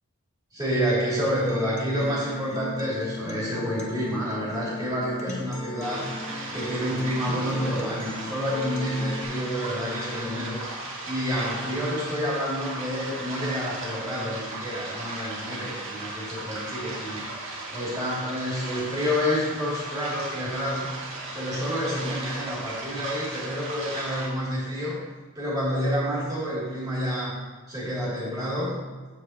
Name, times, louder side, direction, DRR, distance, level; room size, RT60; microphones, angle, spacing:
voice 1, 0.5-6.1 6.5-10.6 11.0-17.3 17.7-20.9 21.3-25.0 25.3-27.3 27.7-28.8, equal, 15° right, -8 dB, 2.7 m, -28 dB
Acoustic guitar, 1.3-9.2, left 1 dB, 30° left, 0.8 m, -37 dB
sound 1, 5.8-24.3, right 2 dB, 60° right, 2.0 m, -36 dB
14.0 x 4.7 x 2.9 m, 1.4 s
head